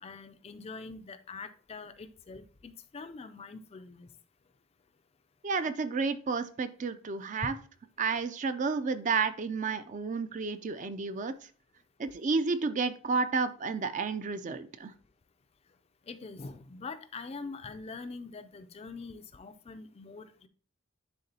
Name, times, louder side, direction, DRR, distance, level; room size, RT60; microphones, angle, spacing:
voice 1, 0.0-4.1 16.1-20.5, left 4 dB, 30° left, 9 dB, 0.4 m, -44 dB
voice 2, 5.4-7.5 8.0-11.3 12.0-14.9, right 4 dB, 35° right, 11 dB, 0.4 m, -31 dB
10.5 x 3.6 x 2.8 m, 0.43 s
head